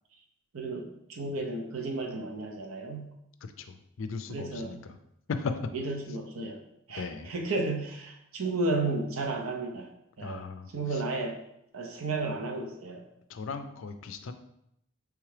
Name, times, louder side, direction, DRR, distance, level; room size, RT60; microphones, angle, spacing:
voice 1, 0.5-3.1 4.3-4.8 5.7-6.6 6.9-9.9 10.2-10.4 10.7-11.4 11.7-13.0, right 2 dB, 75° right, 2 dB, 0.7 m, -33 dB
voice 2, 3.4-5.0 5.3-5.5 7.0-7.3 10.2-11.0 13.3-14.3, left 5 dB, 65° left, 9 dB, 0.4 m, -37 dB
4.6 x 3.2 x 3.3 m, 0.78 s
head